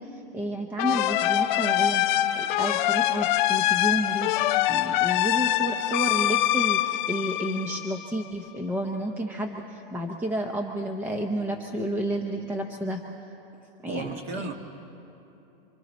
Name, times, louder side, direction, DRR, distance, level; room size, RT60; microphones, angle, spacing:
voice 1, 0.0-2.0 2.3-13.0 13.8-14.2, equal, 5° right, 3 dB, 0.6 m, -31 dB
sound 1, 0.8-8.2, left 13 dB, 50° left, 0.6 m, -24 dB
voice 2, 13.9-14.5, right 3 dB, 35° right, 6 dB, 1.5 m, -34 dB
29.0 x 25.0 x 4.2 m, 3.0 s
supercardioid pair, 160°, 30 cm